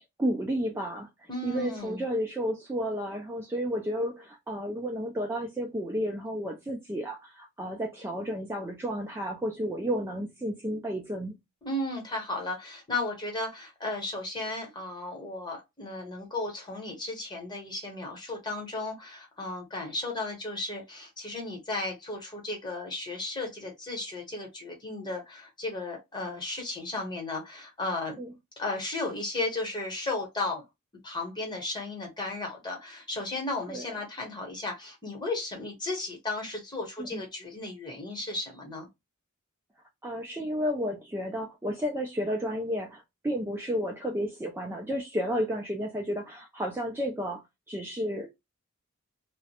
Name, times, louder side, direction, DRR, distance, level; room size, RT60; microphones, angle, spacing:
voice 1, 0.2-1.1 1.4-11.4 28.2-28.3 33.7-33.9 37.0-37.2 40.0-48.3, equal, 10° right, 0.3 m, -32 dB
voice 2, 1.3-2.0 11.6-28.2 28.6-30.6 31.0-38.9, left 2 dB, 20° left, 0.9 m, -34 dB
2.3 x 2.0 x 2.8 m
head